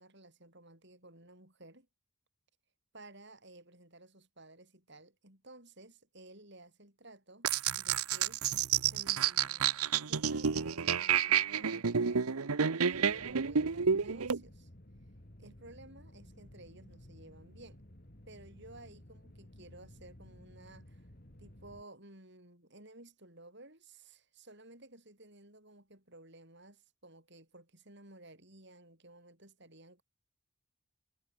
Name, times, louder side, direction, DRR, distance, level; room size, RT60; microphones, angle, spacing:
voice 1, 0.0-1.9 2.9-7.5 7.8-8.5 8.9-9.8 10.1-12.3 12.7-14.7 15.4-17.8 18.3-21.1 21.4-30.0, right 2 dB, 50° right, 7.5 m, -55 dB
sound 1, 7.4-14.4, right 7 dB, 90° right, 0.9 m, -30 dB
sound 2, 12.9-21.8, left 1 dB, 45° left, 2.8 m, -55 dB
head